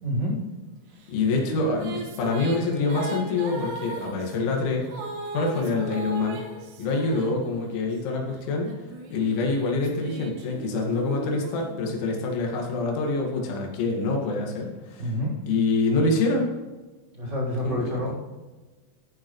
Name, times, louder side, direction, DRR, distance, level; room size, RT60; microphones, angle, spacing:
voice 1, 0.0-0.4 15.0-15.4 17.1-18.1, equal, 25° right, -6 dB, 3.5 m, -28 dB
Female singing, 1.0-7.9 8.6-12.4, right 3 dB, 90° right, 4.6 m, -37 dB
voice 2, 1.1-4.9 5.3-6.4 6.8-15.1 15.5-16.5 17.6-18.1, left 3 dB, 75° left, 0 dB, 4.3 m, -26 dB
14.0 x 10.0 x 3.1 m, 1.2 s
omnidirectional pair, 5.5 m